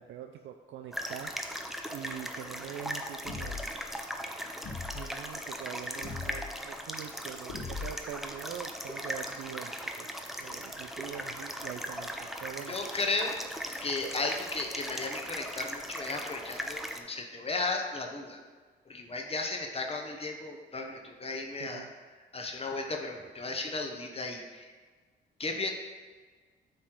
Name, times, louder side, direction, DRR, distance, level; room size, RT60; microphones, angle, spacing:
voice 1, 0.0-1.3 1.9-4.1 4.9-10.1 10.3-12.8 21.6-21.9, right 9 dB, 75° right, 5 dB, 0.4 m, -43 dB
sound 1, 0.9-17.0, equal, ahead, 0.5 m, -39 dB
sound 2, 3.3-3.8 4.6-5.1 6.0-6.5 7.5-8.2, left 4 dB, 70° left, 1.1 m, -39 dB
voice 2, 12.7-13.3 13.8-18.4 18.9-21.9 22.3-24.7 25.4-25.7, left 3 dB, 30° left, 2 dB, 0.8 m, -35 dB
7.4 x 3.2 x 4.5 m, 1.5 s
cardioid pair, 90°, 20 cm